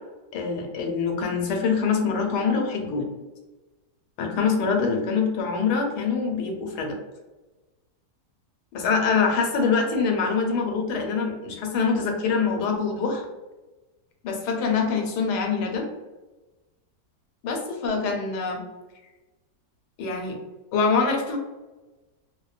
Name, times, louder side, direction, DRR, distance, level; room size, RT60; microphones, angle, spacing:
voice 1, 0.3-3.1 4.2-7.0 8.7-13.2 14.2-15.9 17.4-18.6 20.0-20.4 20.7-21.4, left 5 dB, 90° left, 2 dB, 1.2 m, -24 dB
2.7 x 2.1 x 2.3 m, 1.1 s
omnidirectional pair, 1.7 m